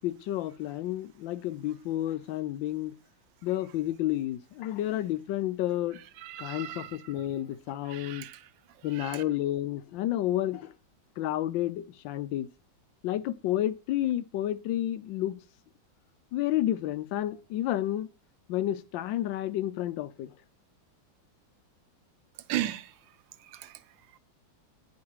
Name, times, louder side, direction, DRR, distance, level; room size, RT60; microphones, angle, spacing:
voice 1, 0.0-2.9 3.4-6.0 6.4-8.3 8.8-10.7 11.2-12.5 13.0-15.4 16.3-18.1 18.5-20.3, left 13 dB, 80° left, 1.3 m, -30 dB
voice 2, 6.2-6.9 7.9-8.4 9.0-9.2 22.5-22.8, right 13 dB, 90° right, 1.4 m, -34 dB
9.6 x 4.7 x 4.7 m
omnidirectional pair, 2.0 m